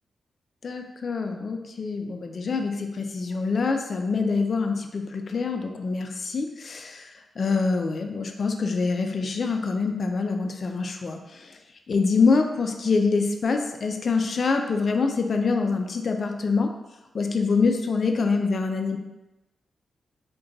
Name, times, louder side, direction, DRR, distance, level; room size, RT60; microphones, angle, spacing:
voice 1, 0.6-11.6 11.9-16.7 17.1-19.0, left 4 dB, 60° left, 5 dB, 0.4 m, -25 dB
3.8 x 2.2 x 3.7 m, 1.0 s
cardioid pair, 70°, 0 cm